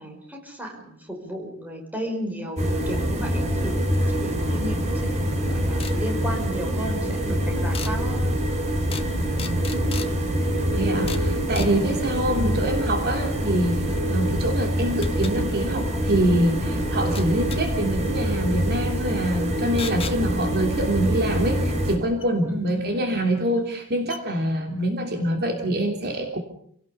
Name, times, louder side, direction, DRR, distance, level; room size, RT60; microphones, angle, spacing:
voice 1, 0.0-3.8 4.1-8.4 12.3-12.6 22.5-22.6, equal, 5° right, 1 dB, 5.6 m, -34 dB
sound 1, 2.6-21.9, equal, 30° right, 4.3 m, -25 dB
sound 2, 5.8-6.0 7.7-7.9 8.9-9.1 9.4-10.1 11.1-11.3 11.6-11.7 14.0-14.1 15.0-15.3 17.2-17.6 19.8-20.2 22.2-22.3 23.3-23.4 23.7-23.8 24.1-24.2, left 6 dB, 25° left, 1.4 m, -35 dB
voice 2, 10.7-26.4, right 1 dB, 45° right, 3 dB, 3.2 m, -25 dB
29.0 x 18.0 x 6.9 m, 0.66 s
head